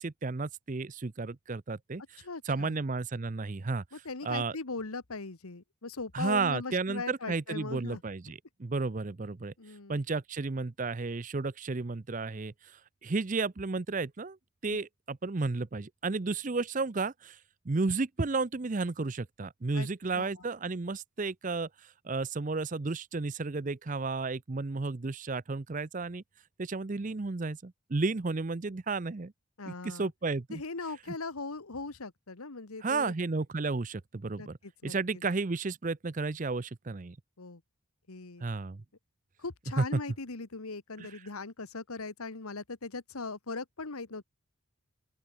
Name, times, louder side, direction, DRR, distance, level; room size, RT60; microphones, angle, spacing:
voice 1, 0.0-3.8 4.2-4.6 6.1-9.5 9.9-14.4 14.6-17.4 17.6-26.2 26.6-29.3 29.7-30.6 32.8-34.6 34.8-37.2 38.4-38.8 39.8-40.0 41.0-41.1, right 3 dB, 35° right, 0.6 m, -33 dB
voice 2, 2.2-2.8 3.9-8.0 9.6-10.0 14.7-14.8 19.7-20.3 29.6-30.1 30.5-33.1 34.4-35.2 37.4-37.6 38.1-38.4 39.4-44.2, left 3 dB, 90° left, 1.5 m, -40 dB
open air
head